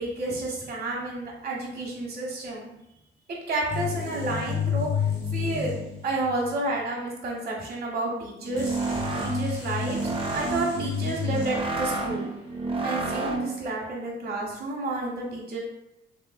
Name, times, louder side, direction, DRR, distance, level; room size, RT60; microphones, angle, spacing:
voice 1, 0.0-2.7 3.5-5.1 5.3-8.8 9.2-12.3 12.8-15.6, right 2 dB, 50° right, -3 dB, 1.1 m, -31 dB
sound 1, 3.7-6.6 8.6-12.0, left 7 dB, 60° left, 1.4 m, -31 dB
sound 2, 8.4-13.7, right 3 dB, 25° right, 0.4 m, -30 dB
3.3 x 3.0 x 2.2 m, 0.88 s
cardioid pair, 90°, 20 cm